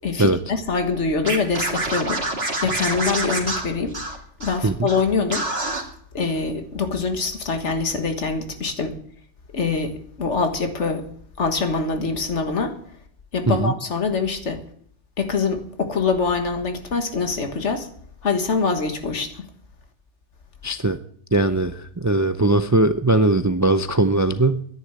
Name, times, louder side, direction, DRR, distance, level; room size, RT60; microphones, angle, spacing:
voice 1, 0.0-2.2 2.6-4.0 4.4-5.5 6.1-9.0 9.5-11.1 11.4-12.8 13.3-14.6 15.2-17.9 18.2-19.5, left 4 dB, 75° left, 1.9 m, -24 dB
Scratching (performance technique), 1.2-4.6 4.9-5.0 5.3-5.8, right 2 dB, 60° right, 2.4 m, -26 dB
voice 2, 20.6-21.0 21.3-24.6, right 2 dB, 25° right, 0.4 m, -20 dB
10.5 x 9.7 x 9.2 m
omnidirectional pair, 1.2 m